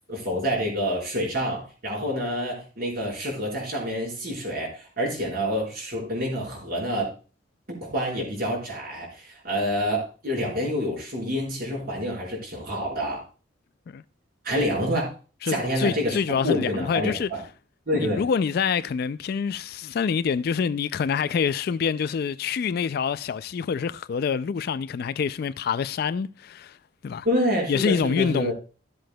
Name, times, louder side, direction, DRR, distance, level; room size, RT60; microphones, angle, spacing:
voice 1, 0.1-7.1 7.7-13.2 14.4-15.1 15.5-16.2 16.4-17.4 17.9-18.2 27.2-28.5, equal, 50° right, 4.2 m, -27 dB
voice 2, 15.4-17.3 17.9-26.8 27.0-27.3 27.7-28.5, left 6 dB, 55° left, 0.3 m, -26 dB
14.5 x 7.6 x 2.2 m
head